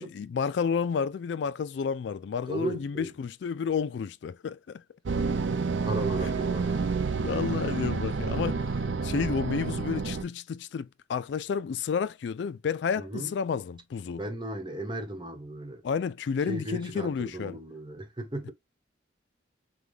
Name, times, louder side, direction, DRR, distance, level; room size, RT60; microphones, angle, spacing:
voice 1, 0.0-4.8 7.2-8.7 9.0-14.2 15.8-17.6, left 6 dB, 65° left, 0.3 m, -31 dB
voice 2, 2.5-3.1 5.9-7.2 13.0-13.3 14.2-15.8 16.5-18.5, right 1 dB, 25° right, 1.1 m, -36 dB
sound 1, 5.1-10.2, right 4 dB, 75° right, 0.5 m, -29 dB
5.5 x 2.3 x 3.2 m
head